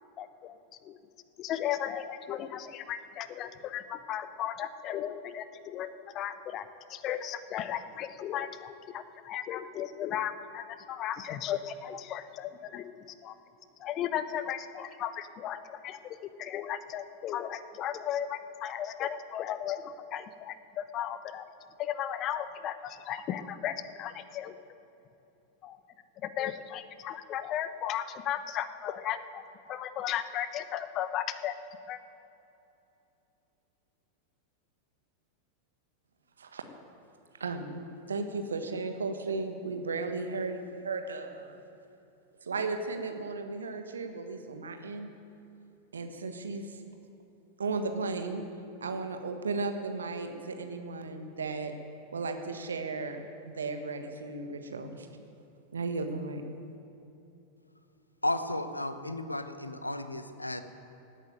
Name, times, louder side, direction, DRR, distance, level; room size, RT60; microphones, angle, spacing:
voice 1, 0.2-1.0 1.4-5.9 6.1-6.6 6.9-12.9 13.2-13.4 13.8-21.5 21.8-24.6 25.6-25.8 26.2-29.4 29.7-31.6 31.9-32.0, left 10 dB, 35° left, 12 dB, 0.9 m, -35 dB
voice 2, 37.4-41.6 42.4-45.1 45.9-46.8 47.6-48.4 48.8-51.7 52.1-55.1 55.7-56.4, right 3 dB, 70° right, 6 dB, 1.5 m, -35 dB
voice 3, 58.2-60.6, left 1 dB, 85° left, 10 dB, 0.9 m, -33 dB
17.0 x 9.1 x 9.3 m, 2.9 s
figure-of-eight pair, 90°, 0 cm